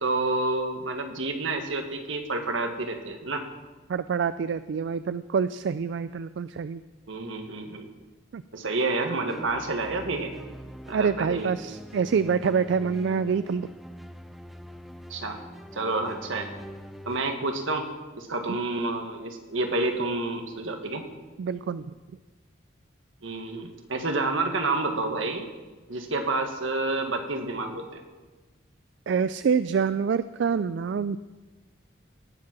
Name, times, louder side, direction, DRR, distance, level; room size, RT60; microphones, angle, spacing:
voice 1, 0.0-3.4 7.1-7.9 8.5-10.4 10.9-11.5 15.1-15.4 15.7-16.5 17.0-17.9 18.2-21.0 23.2-25.5 25.9-28.0, right 2 dB, 80° right, 5 dB, 1.6 m, -29 dB
voice 2, 3.9-6.8 8.3-8.4 10.9-13.7 18.5-18.6 21.4-21.9 29.1-31.2, right 6 dB, 65° right, 14 dB, 0.3 m, -26 dB
sound 1, 8.6-17.2, equal, ahead, 0.5 m, -44 dB
18.5 x 7.5 x 6.1 m, 1.2 s
head